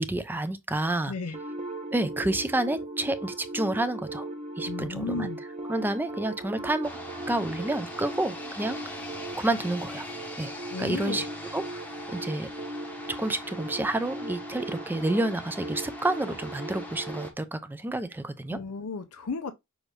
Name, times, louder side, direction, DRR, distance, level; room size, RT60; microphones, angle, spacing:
voice 1, 0.0-1.1 1.9-4.3 4.6-5.3 5.7-7.0 7.3-8.8 9.4-10.1 10.4-10.5 10.8-11.3 11.5-12.5 13.1-18.6, right 1 dB, 10° right, 0.4 m, -29 dB
voice 2, 1.1-1.4 4.7-5.4 10.7-11.3 18.5-19.5, left 3 dB, 85° left, 0.6 m, -34 dB
sound 1, 1.3-17.3, right 2 dB, 30° right, 0.9 m, -38 dB
sound 2, 6.8-17.3, left 1 dB, 10° left, 0.8 m, -42 dB
6.3 x 2.5 x 3.2 m
head